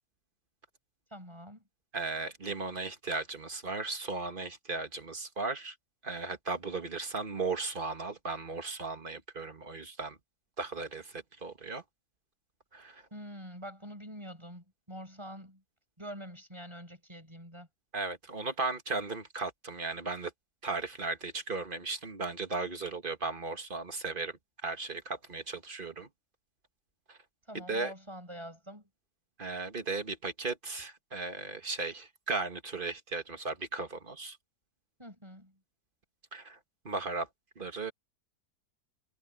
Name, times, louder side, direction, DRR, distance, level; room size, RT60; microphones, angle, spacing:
voice 1, 1.1-1.6 13.1-15.6 16.0-17.7 27.5-28.9 35.0-35.6, equal, 15° right, 6.9 m, -45 dB
voice 2, 1.9-5.7 6.0-10.2 10.6-11.8 12.7-13.0 17.9-20.3 20.6-26.1 27.1-27.2 27.5-27.9 29.4-34.4 36.3-36.6 36.8-37.3 37.5-37.9, right 3 dB, 30° right, 1.7 m, -36 dB
omnidirectional pair, 1.8 m